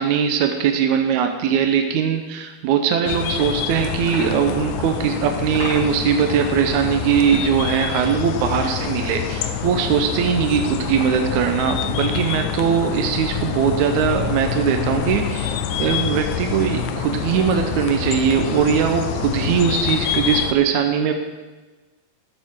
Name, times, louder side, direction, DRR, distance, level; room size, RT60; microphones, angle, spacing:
voice 1, 0.0-21.1, right 7 dB, 75° right, 5 dB, 1.8 m, -20 dB
sound 1, 3.1-20.5, left 9 dB, 80° left, 1.9 m, -26 dB
12.5 x 9.2 x 3.7 m, 1.2 s
omnidirectional pair, 4.2 m